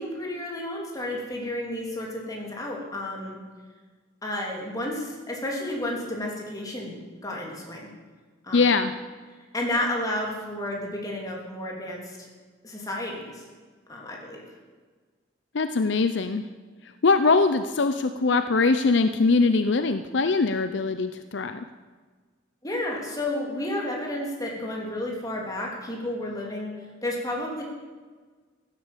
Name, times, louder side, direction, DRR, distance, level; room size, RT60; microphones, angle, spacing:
voice 1, 0.0-3.4 4.2-7.9 8.4-8.7 9.5-12.2 12.6-13.5 13.9-14.4 22.6-26.7 27.0-27.6, left 1 dB, 20° left, -1 dB, 3.1 m, -31 dB
voice 2, 8.5-8.9 15.5-16.4 17.0-21.6, left 4 dB, 65° left, 10 dB, 0.6 m, -22 dB
15.0 x 11.0 x 7.4 m, 1.4 s
head